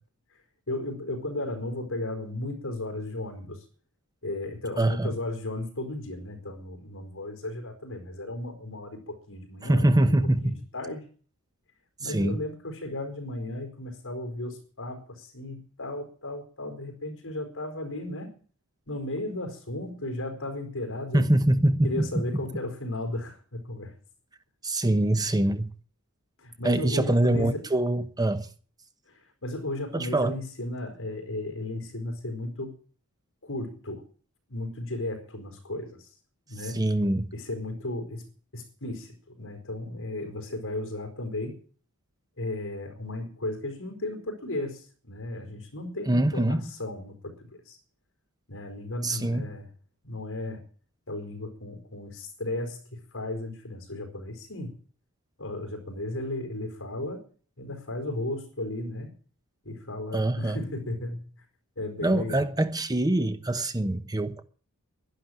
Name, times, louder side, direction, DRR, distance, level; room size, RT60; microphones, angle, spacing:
voice 1, 0.7-3.6 4.2-10.1 10.4-11.0 12.0-18.3 18.9-21.2 21.8-23.9 26.4-27.6 29.1-32.7 33.4-34.0 34.5-36.1 36.5-36.9 37.3-38.3 38.5-41.6 42.4-47.3 47.7-47.8 48.5-49.7 50.0-50.6 51.1-54.8 55.4-57.2 57.6-59.1 59.6-61.3 61.8-62.5, left 1 dB, 60° left, 4.5 m, -35 dB
voice 2, 4.8-5.1 9.6-10.6 12.0-12.4 21.1-22.1 24.6-25.7 26.6-28.5 29.9-30.4 36.7-37.3 46.1-46.7 49.0-49.4 60.1-60.6 62.0-64.4, right 1 dB, 15° right, 1.0 m, -24 dB
11.5 x 11.5 x 9.3 m
head